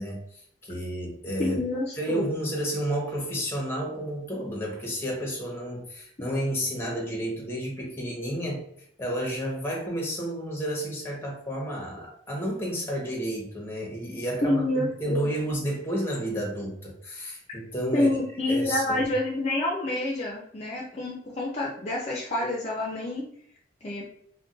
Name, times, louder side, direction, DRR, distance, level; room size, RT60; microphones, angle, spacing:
voice 1, 0.0-1.6 2.0-8.6 9.0-18.1 18.5-19.1, equal, 15° left, -2 dB, 0.9 m, -31 dB
voice 2, 1.4-2.3 14.4-15.2 17.9-23.2 23.8-24.1, left 1 dB, 35° left, -4 dB, 0.5 m, -28 dB
2.5 x 2.2 x 3.7 m, 0.67 s
head